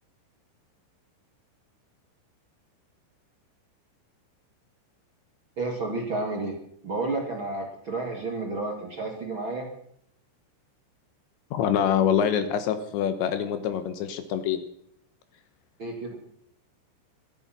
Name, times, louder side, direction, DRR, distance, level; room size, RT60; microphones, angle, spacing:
voice 1, 5.6-6.6 6.8-9.7 15.8-16.1, right 2 dB, 70° right, 0 dB, 1.1 m, -31 dB
voice 2, 11.5-14.6, left 9 dB, 75° left, 10 dB, 3.0 m, -25 dB
25.0 x 8.9 x 5.9 m, 0.69 s
omnidirectional pair, 5.8 m